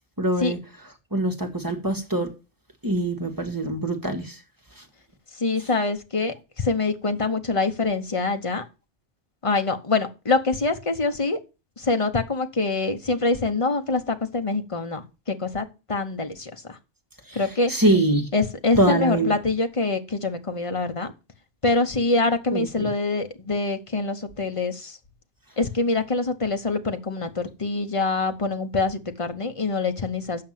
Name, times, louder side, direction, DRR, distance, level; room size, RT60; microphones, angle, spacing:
voice 1, 0.2-0.6 1.1-2.3 2.8-4.4 17.3-17.4 17.7-18.3 18.8-19.3 22.5-22.9, right 1 dB, 20° right, 1.5 m, -23 dB
voice 2, 5.4-8.6 9.4-11.4 11.8-16.8 17.3-17.7 18.3-21.1 21.6-25.0 25.6-30.4, left 3 dB, 30° left, 1.0 m, -25 dB
7.7 x 5.9 x 7.4 m
omnidirectional pair, 1.2 m